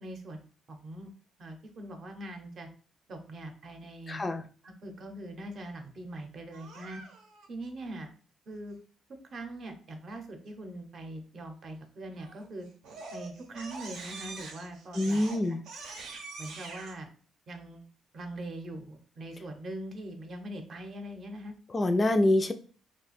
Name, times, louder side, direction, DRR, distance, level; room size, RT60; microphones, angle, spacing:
voice 1, 0.0-1.1 1.4-2.7 3.1-4.2 4.6-7.0 7.5-8.1 8.5-8.8 9.3-12.7 13.1-15.2 16.4-17.1 17.5-17.9 18.1-21.6, right 1 dB, 55° right, 5 dB, 0.7 m, -42 dB
voice 2, 4.1-4.4 15.0-15.6 21.7-22.5, left 1 dB, 30° left, 8 dB, 0.3 m, -25 dB
Crying sobbing, 6.5-7.5 12.1-12.5 12.8-16.9, right 3 dB, 90° right, 0.7 m, -44 dB
2.5 x 2.2 x 4.0 m, 0.41 s
cardioid pair, 90°, 0 cm